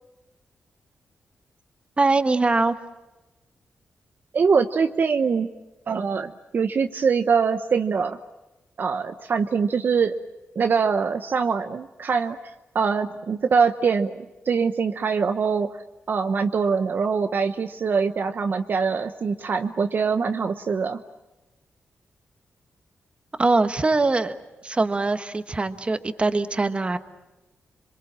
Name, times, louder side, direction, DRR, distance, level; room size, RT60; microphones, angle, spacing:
voice 1, 2.0-2.7 23.4-24.3 24.6-27.0, right 3 dB, 30° right, 9 dB, 1.3 m, -22 dB
voice 2, 4.3-5.5 5.9-8.2 8.8-10.1 10.5-12.4 12.7-15.8 16.1-21.0, right 5 dB, 55° right, 7 dB, 0.9 m, -23 dB
27.0 x 23.0 x 7.5 m, 1.0 s
cardioid pair, 85°, 4 cm